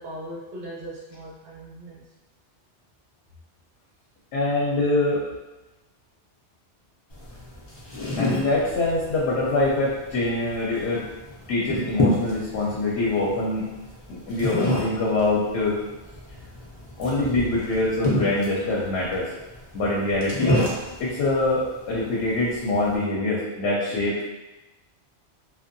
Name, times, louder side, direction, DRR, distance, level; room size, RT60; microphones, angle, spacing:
voice 1, 0.0-2.0, right 1 dB, 50° right, -4 dB, 0.7 m, -39 dB
voice 2, 4.3-5.2 8.2-11.1 11.5-13.7 14.1-15.8 17.0-19.3 19.7-20.6 21.0-24.2, left 2 dB, 75° left, -5 dB, 0.8 m, -24 dB
sound 1, 7.1-23.0, left 1 dB, 35° left, 0.4 m, -30 dB
2.6 x 2.2 x 2.5 m, 1.1 s
omnidirectional pair, 1.2 m